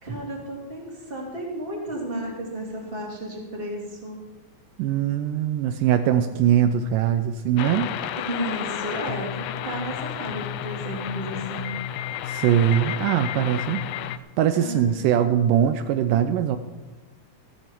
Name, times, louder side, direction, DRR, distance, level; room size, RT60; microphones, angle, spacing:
voice 1, 0.0-4.2 8.1-11.8 14.6-15.1, right 1 dB, 15° right, -1 dB, 2.7 m, -33 dB
voice 2, 4.8-7.9 12.3-13.8 14.4-16.6, right 9 dB, 80° right, 9 dB, 2.0 m, -21 dB
sound 1, 7.6-14.2, left 11 dB, 80° left, 1.9 m, -31 dB
15.5 x 13.5 x 4.5 m, 1.2 s
omnidirectional pair, 4.2 m